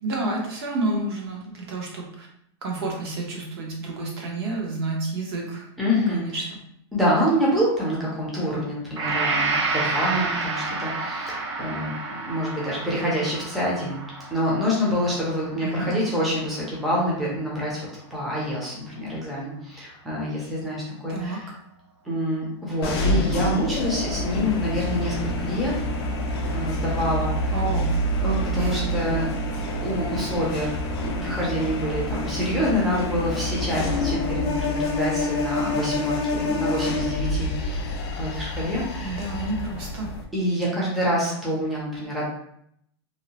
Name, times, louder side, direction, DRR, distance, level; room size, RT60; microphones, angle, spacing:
voice 1, 0.0-2.3 2.6-5.7 6.1-6.6 15.6-15.9 21.1-21.4 27.5-27.9 28.5-28.7 39.0-40.1, right 2 dB, 60° right, -1 dB, 0.9 m, -30 dB
voice 2, 5.8-6.4 6.9-14.0 14.3-21.5 22.0-25.7 26.5-27.5 28.2-29.3 29.8-30.7 31.0-39.2 40.3-42.2, equal, ahead, -7 dB, 0.5 m, -26 dB
Gong, 9.0-17.0, right 3 dB, 85° right, 0.6 m, -30 dB
sound 1, 22.8-40.2, left 1 dB, 60° left, 0.6 m, -27 dB
2.6 x 2.1 x 2.9 m, 0.73 s
supercardioid pair, 165°, 15 cm